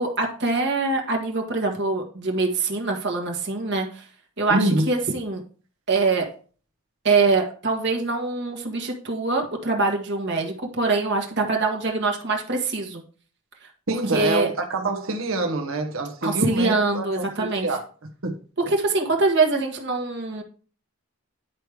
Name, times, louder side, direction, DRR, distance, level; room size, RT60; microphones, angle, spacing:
voice 1, 0.0-4.1 4.4-5.4 5.9-6.3 7.0-13.0 14.1-14.5 16.2-17.7 18.7-20.4, right 3 dB, 50° right, 1.5 m, -24 dB
voice 2, 4.5-4.9 13.9-17.8 18.2-18.3 18.6-18.7, right 2 dB, 70° right, 1.2 m, -26 dB
10.0 x 4.8 x 4.8 m
head